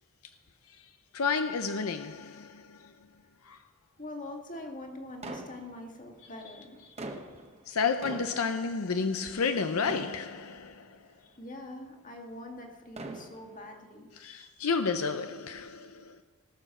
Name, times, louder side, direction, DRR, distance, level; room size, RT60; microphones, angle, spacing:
voice 1, 0.7-2.9 3.4-3.6 7.7-11.1 14.2-16.2, left 5 dB, 75° left, 0.6 m, -31 dB
voice 2, 4.0-6.8 11.1-14.1, left 1 dB, 40° left, 1.9 m, -44 dB
sound 1, 5.2-6.2 6.7-9.6 9.9-10.9 11.6-11.7 12.7-13.8, right 2 dB, 30° right, 1.1 m, -43 dB
18.5 x 6.9 x 6.1 m
head